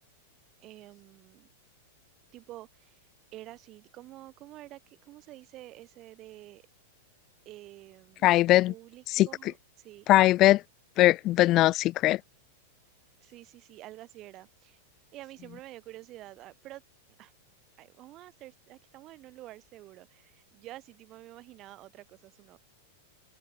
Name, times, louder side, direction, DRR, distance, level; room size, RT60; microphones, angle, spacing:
voice 1, 0.6-1.5 2.3-6.7 7.4-8.4 8.7-10.1 13.2-14.8 15.1-16.8 17.2-17.3 17.8-22.6, right 16 dB, 40° right, 6.4 m, -49 dB
voice 2, 8.2-8.7 9.2-9.3 10.1-10.6 11.0-12.2, left 16 dB, 40° left, 0.5 m, -20 dB
hypercardioid pair, 100°, 0 cm